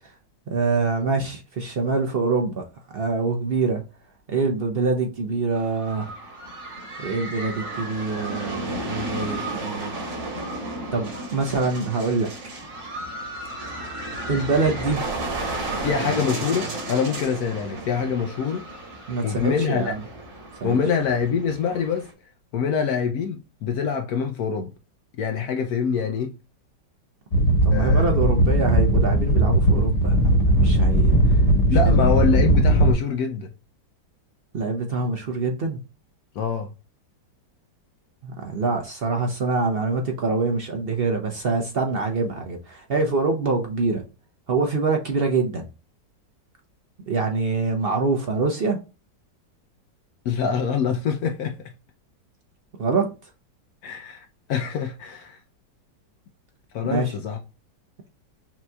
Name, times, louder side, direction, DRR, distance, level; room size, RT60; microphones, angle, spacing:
voice 1, 0.5-2.6 2.9-3.8 4.3-6.1 7.0-9.9 10.9-12.3 14.3-15.0 19.1-20.0 20.6-20.8 27.6-31.2 31.9-32.0 34.5-35.8 38.2-44.0 44.5-45.7 47.1-48.8 52.8-53.1 56.8-57.1, right 4 dB, 65° right, 0.5 m, -25 dB
sound 1, 5.5-22.1, right 1 dB, 90° right, 2.3 m, -33 dB
voice 2, 15.8-18.6 19.2-19.9 20.6-22.1 22.5-24.7 25.2-26.3 27.7-28.1 31.7-33.5 36.4-36.7 50.3-51.6 53.8-55.4 56.7-57.4, left 6 dB, 70° left, 0.9 m, -25 dB
sound 2, 27.3-32.9, right 1 dB, 45° left, 1.3 m, -18 dB
5.9 x 2.9 x 2.2 m
omnidirectional pair, 1.9 m